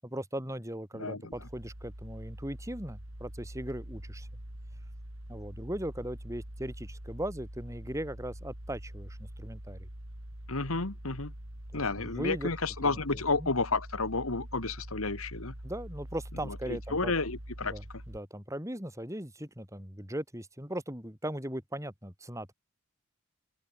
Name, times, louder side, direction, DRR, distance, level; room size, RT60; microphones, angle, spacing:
voice 1, 0.0-4.3 5.3-9.9 11.7-12.5 12.8-13.5 15.6-17.1 17.7-22.5, right 1 dB, 15° right, 7.3 m, -38 dB
voice 2, 1.0-1.3 10.5-11.3 11.7-15.5 16.5-17.8, left 3 dB, 80° left, 2.2 m, -31 dB
sound 1, 1.3-18.2, right 1 dB, 70° right, 4.1 m, -45 dB
open air
head